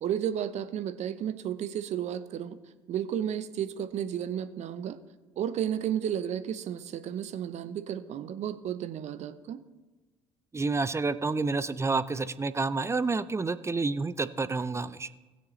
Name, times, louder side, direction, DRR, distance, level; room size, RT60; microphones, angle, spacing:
voice 1, 0.0-2.6 2.9-5.0 5.4-9.6, right 9 dB, 50° right, 12 dB, 0.8 m, -32 dB
voice 2, 10.5-15.1, right 3 dB, 20° right, 14 dB, 0.6 m, -29 dB
19.0 x 7.0 x 3.2 m, 1.2 s
figure-of-eight pair, 55°, 15 cm